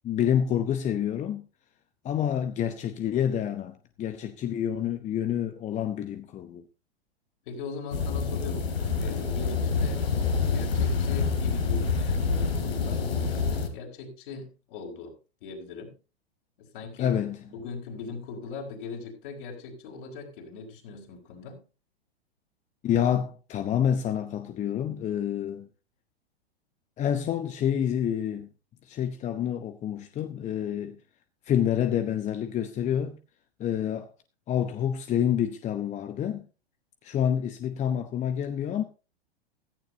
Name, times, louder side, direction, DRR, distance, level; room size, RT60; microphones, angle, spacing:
voice 1, 0.0-1.4 2.0-6.6 17.0-17.4 22.8-25.7 27.0-28.5 28.8-31.0 31.4-33.2 33.6-34.1 34.5-36.4 37.0-38.8, left 9 dB, 25° left, 0.9 m, -28 dB
voice 2, 7.5-10.1 10.5-15.1 15.4-15.9 16.6-17.2 17.5-21.6, left 4 dB, 55° left, 5.5 m, -40 dB
sound 1, 7.9-13.7, left 5 dB, 70° left, 3.1 m, -27 dB
16.0 x 14.5 x 2.8 m
figure-of-eight pair, 105°, 31 cm